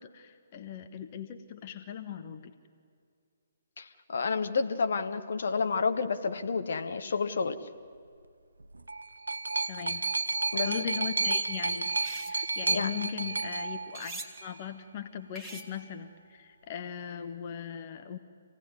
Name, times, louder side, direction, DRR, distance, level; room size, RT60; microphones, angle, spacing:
voice 1, 0.0-2.5 9.7-10.0 10.5-11.9 12.3-18.2, left 8 dB, 35° left, 8 dB, 1.2 m, -39 dB
voice 2, 3.8-7.6 10.5-10.7 12.7-12.9, left 5 dB, 55° left, 8 dB, 1.3 m, -30 dB
sound 1, 8.6-14.6 15.5-15.6, right 3 dB, 75° right, 0.5 m, -31 dB
sound 2, 11.8-12.4 13.9-14.3 15.3-15.9, right 2 dB, 10° right, 1.7 m, -43 dB
26.5 x 17.5 x 9.7 m, 2.2 s
figure-of-eight pair, 130°, 0 cm